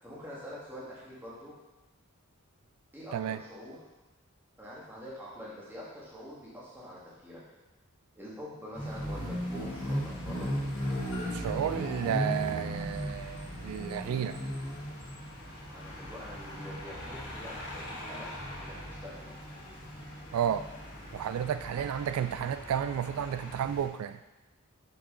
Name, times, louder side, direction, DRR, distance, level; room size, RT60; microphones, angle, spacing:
voice 1, 0.0-1.5 2.9-3.8 4.6-7.4 8.1-10.6 15.7-18.3 18.5-19.3 21.8-21.9, equal, 10° right, -7 dB, 1.8 m, -45 dB
sound 1, 8.7-23.8, equal, 60° left, 2.1 m, -37 dB
voice 2, 11.3-14.4 20.3-20.7 21.1-24.2, right 9 dB, 80° right, 14 dB, 0.3 m, -32 dB
6.1 x 5.9 x 3.8 m, 1.1 s
head